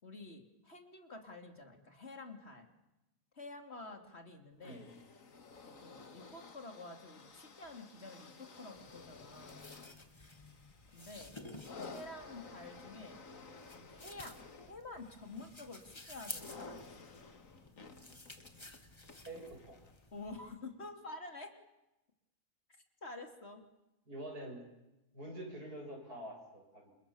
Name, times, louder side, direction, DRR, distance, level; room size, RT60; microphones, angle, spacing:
voice 1, 0.0-2.7 3.3-4.9 5.6-9.6 10.9-11.3 11.9-13.2 13.9-17.1 20.1-21.5 23.0-23.6, left 2 dB, 45° left, 5 dB, 3.3 m, -49 dB
sound 1, 4.6-20.1 20.9-21.0, left 4 dB, 60° left, 2.3 m, -54 dB
sound 2, 8.8-20.5, left 2 dB, 20° left, 1.8 m, -53 dB
voice 2, 19.2-19.8 24.1-24.6 25.1-26.9, right 1 dB, 85° right, 1 dB, 8.1 m, -46 dB
29.0 x 28.0 x 7.3 m, 0.95 s
omnidirectional pair, 1.6 m